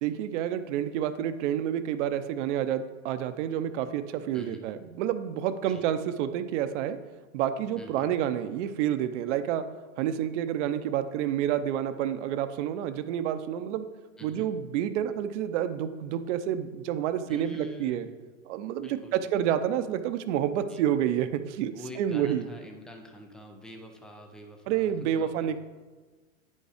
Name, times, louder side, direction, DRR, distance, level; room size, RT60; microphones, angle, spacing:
voice 1, 0.0-7.0 7.3-9.7 10.0-13.8 14.2-18.1 18.5-22.4 24.7-25.6, right 10 dB, 55° right, 10 dB, 0.8 m, -29 dB
voice 2, 7.8-8.1 14.2-14.5 17.3-18.2 18.8-19.1 20.7-20.8 21.7-25.6, equal, ahead, 3 dB, 0.3 m, -44 dB
9.2 x 5.5 x 5.0 m, 1.3 s
hypercardioid pair, 130°, 41 cm